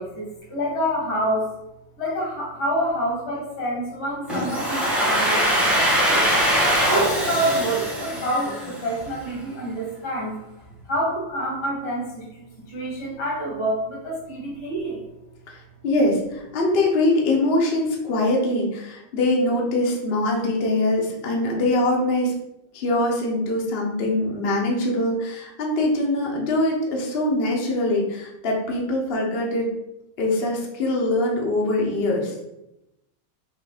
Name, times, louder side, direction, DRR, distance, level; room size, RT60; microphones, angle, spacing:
voice 1, 0.0-1.5 2.0-6.2 6.9-10.4 10.9-12.3 12.7-15.1, right 1 dB, 85° left, -3 dB, 2.4 m, -27 dB
Domestic sounds home sounds, 4.3-9.0, equal, ahead, 0.8 m, -22 dB
voice 2, 15.5-22.3 22.7-29.7 30.2-32.3, left 1 dB, 45° left, -1 dB, 0.7 m, -23 dB
5.9 x 2.6 x 3.4 m, 0.89 s
omnidirectional pair, 2.2 m